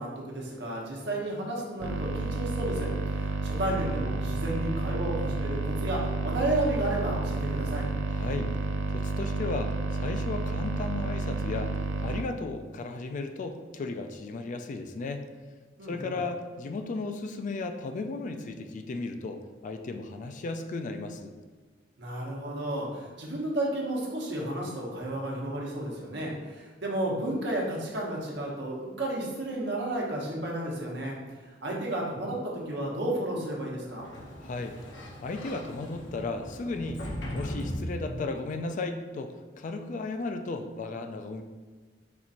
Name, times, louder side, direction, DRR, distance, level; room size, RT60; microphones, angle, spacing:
voice 1, 0.0-7.9 15.8-16.1 22.0-31.2 31.6-34.0, right 1 dB, 70° right, -3 dB, 1.0 m, -32 dB
sound 1, 1.8-12.2, right 3 dB, 85° right, 0.4 m, -31 dB
voice 2, 8.1-8.5 8.9-11.8 12.0-15.2 15.9-21.3 34.4-34.8 35.2-37.0 37.3-41.4, left 3 dB, 45° left, 7 dB, 0.3 m, -35 dB
Sliding door, 33.8-38.5, equal, 80° left, 0.9 m, -38 dB
4.3 x 4.1 x 2.5 m, 1.4 s
head